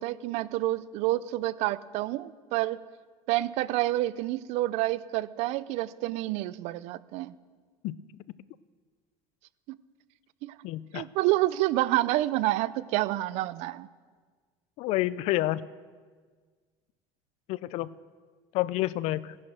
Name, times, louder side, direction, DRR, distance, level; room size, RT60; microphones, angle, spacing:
voice 1, 0.0-2.8 3.3-7.3 9.7-9.8 10.4-10.5 10.9-13.9, right 16 dB, 65° right, 17 dB, 0.6 m, -28 dB
voice 2, 10.6-11.1 14.8-15.6 17.5-17.9 18.5-19.4, left 16 dB, 60° left, 18 dB, 0.5 m, -29 dB
17.5 x 11.0 x 6.3 m, 1.5 s
cardioid pair, 130°, 12 cm